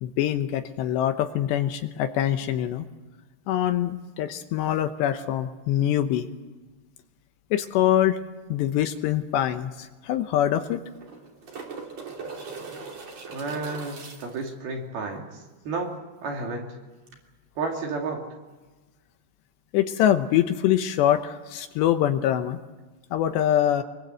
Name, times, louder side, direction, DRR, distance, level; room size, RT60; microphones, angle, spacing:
voice 1, 0.0-2.9 3.5-6.3 7.5-8.2 8.5-10.8 19.7-22.6 23.1-23.8, left 11 dB, 75° left, 8 dB, 2.9 m, -24 dB
sound 1, 9.3-9.4 9.7-9.8 10.8-14.5 17.1-17.2, right 4 dB, 40° right, 3.6 m, -40 dB
voice 2, 13.3-16.8 17.6-18.3, right 3 dB, 55° right, 1 dB, 4.3 m, -32 dB
24.5 x 22.5 x 8.0 m, 1.2 s
omnidirectional pair, 5.4 m